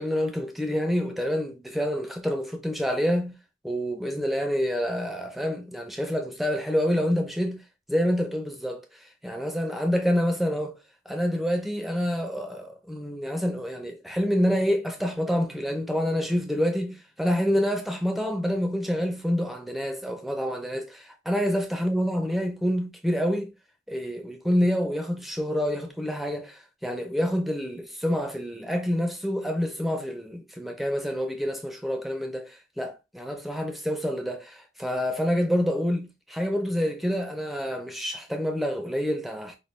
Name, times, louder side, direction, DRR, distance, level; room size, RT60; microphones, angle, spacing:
voice 1, 0.0-3.4 3.6-7.6 7.9-10.7 11.1-23.5 23.9-39.6, equal, ahead, 0.5 m, -27 dB
5.3 x 2.2 x 3.2 m
head